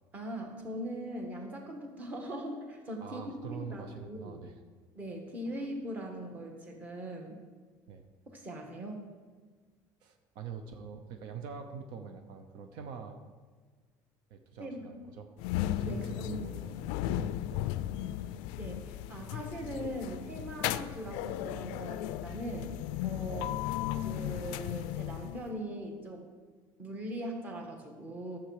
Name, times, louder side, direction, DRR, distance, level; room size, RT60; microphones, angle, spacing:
voice 1, 0.1-4.4 4.9-7.3 8.3-9.1 14.6-14.8 15.8-16.5 18.6-22.7 23.0-23.5 24.0-26.3 26.8-28.4, right 1 dB, 20° right, 2 dB, 1.4 m, -40 dB
voice 2, 3.0-4.6 5.5-5.6 7.9-8.0 10.0-13.2 14.3-15.3 15.7-18.3 23.4-23.5, right 6 dB, 65° right, 6 dB, 0.8 m, -45 dB
sound 1, 15.4-25.6, left 13 dB, 90° left, 0.4 m, -36 dB
12.0 x 7.3 x 4.8 m, 1.4 s
cardioid pair, 175°, 8 cm